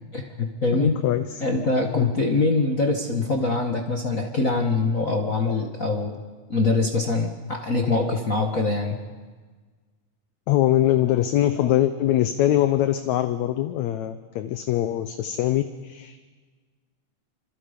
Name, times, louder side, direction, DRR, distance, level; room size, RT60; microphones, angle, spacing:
voice 1, 0.1-1.0 1.4-6.2 6.5-9.0, left 3 dB, 40° left, 2 dB, 1.2 m, -23 dB
voice 2, 0.7-1.2 1.9-2.1 10.5-16.2, left 13 dB, 70° left, 9 dB, 2.0 m, -22 dB
26.5 x 26.0 x 5.2 m, 1.4 s
omnidirectional pair, 3.7 m